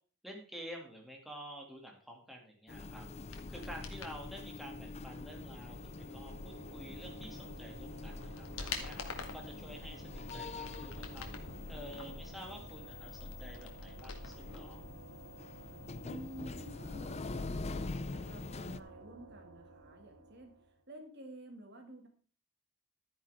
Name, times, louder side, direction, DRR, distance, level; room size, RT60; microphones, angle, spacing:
voice 1, 0.2-3.1 3.5-9.0 9.3-11.3 11.7-14.8, equal, ahead, 0 dB, 2.4 m, -49 dB
sound 1, 2.7-18.8, left 3 dB, 30° left, 0.5 m, -45 dB
sound 2, 3.2-4.2 7.2-7.3 7.8-9.5 10.0-11.5 11.9-14.6 14.9-15.0, left 4 dB, 75° left, 1.9 m, -46 dB
sound 3, 5.0-20.8, right 3 dB, 80° right, 2.4 m, -54 dB
voice 2, 16.0-20.6 20.9-22.1, right 1 dB, 50° right, 4 dB, 2.2 m, -51 dB
12.5 x 9.9 x 3.6 m, 0.41 s
head